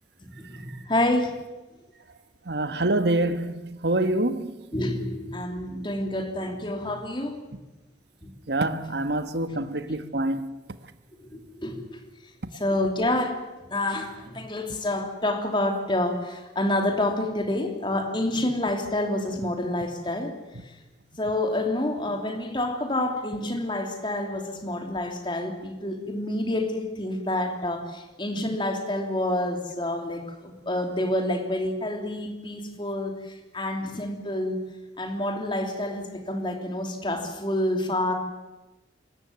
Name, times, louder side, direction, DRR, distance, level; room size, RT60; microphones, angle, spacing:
voice 1, 0.2-1.3 4.7-7.4 8.2-8.3 9.5-9.6 11.2-12.1 12.5-13.4 13.7-20.4 20.6-20.8 21.2-34.6 35.0-38.1, left 1 dB, 25° left, 3.1 m, -28 dB
voice 2, 2.5-4.5 8.5-10.5, right 1 dB, 65° right, 1.4 m, -26 dB
26.0 x 14.5 x 9.5 m
head